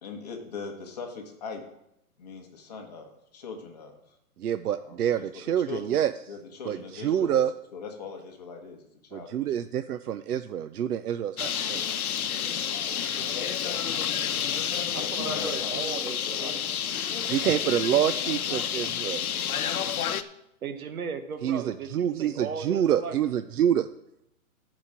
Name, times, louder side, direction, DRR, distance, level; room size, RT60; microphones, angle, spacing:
voice 1, 0.0-1.6 2.2-4.2 4.8-5.3 5.7-6.0 6.3-7.4 7.7-9.7 12.7-16.0 16.3-16.6 18.2-18.4 18.8-19.5, left 5 dB, 30° left, 2 dB, 1.3 m, -41 dB
voice 2, 4.4-6.1 6.7-7.5 9.1-11.8 17.3-19.2 21.4-23.9, right 10 dB, 90° right, 11 dB, 0.7 m, -27 dB
Bird, 11.4-20.2, left 8 dB, 75° left, 0.9 m, -30 dB
voice 3, 14.9-16.6 20.6-23.2, right 6 dB, 70° right, 8 dB, 1.2 m, -36 dB
11.0 x 5.1 x 7.1 m, 0.79 s
hypercardioid pair, 175°, 44 cm